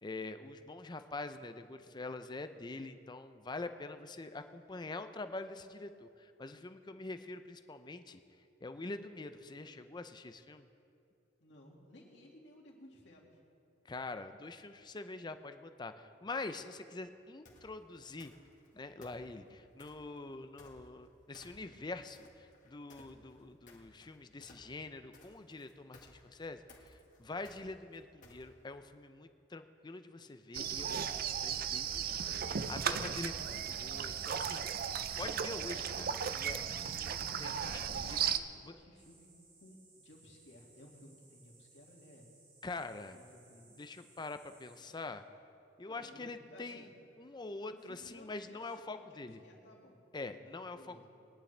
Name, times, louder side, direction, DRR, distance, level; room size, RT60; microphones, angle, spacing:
voice 1, 0.0-8.2 8.6-10.7 13.8-18.3 18.7-34.9 35.2-38.3 38.6-38.7 42.6-43.2 43.8-45.2 45.8-46.9 47.2-49.4 50.1-51.0, left 3 dB, 25° left, 9 dB, 0.5 m, -45 dB
voice 2, 11.4-13.4 37.1-37.6 38.3-39.3 39.6-42.3 43.0-43.7 45.9-46.9 47.7-50.4 50.7-51.1, left 1 dB, 70° left, -2 dB, 2.2 m, -58 dB
sound 1, 17.4-17.7 18.2-18.7 19.0-20.1 20.6-21.1 21.3-21.8 22.1-28.7, left 2 dB, 45° left, 1.9 m, -59 dB
sound 2, 30.5-38.4, right 8 dB, 55° right, 0.5 m, -36 dB
sound 3, 38.9-44.9, right 3 dB, 70° right, 3.8 m, -64 dB
21.0 x 10.5 x 3.3 m, 2.6 s
head